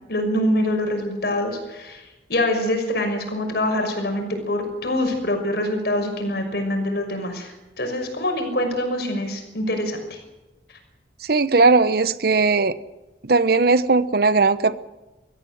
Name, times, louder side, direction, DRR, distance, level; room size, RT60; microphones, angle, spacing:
voice 1, 0.1-10.2, left 1 dB, 60° left, 5 dB, 6.0 m, -25 dB
voice 2, 11.3-12.7 13.2-14.8, right 3 dB, 60° right, 15 dB, 0.9 m, -18 dB
23.0 x 15.0 x 9.3 m, 1.1 s
head